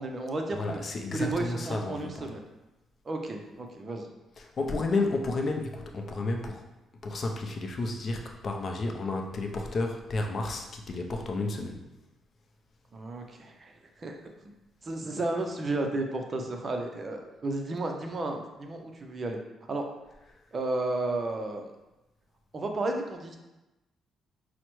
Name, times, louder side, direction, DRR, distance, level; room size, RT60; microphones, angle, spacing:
voice 1, 0.0-0.8 1.1-2.4 3.1-4.0 4.7-4.8 12.9-13.7 14.0-14.2 14.8-19.4 19.7-19.9 20.5-21.7 22.5-23.4, right 2 dB, 40° right, 3 dB, 0.5 m, -32 dB
voice 2, 0.5-2.3 4.4-6.6 7.0-11.8, left 2 dB, 45° left, 2 dB, 0.5 m, -31 dB
5.6 x 2.1 x 3.0 m, 1.0 s
cardioid pair, 90°, 0 cm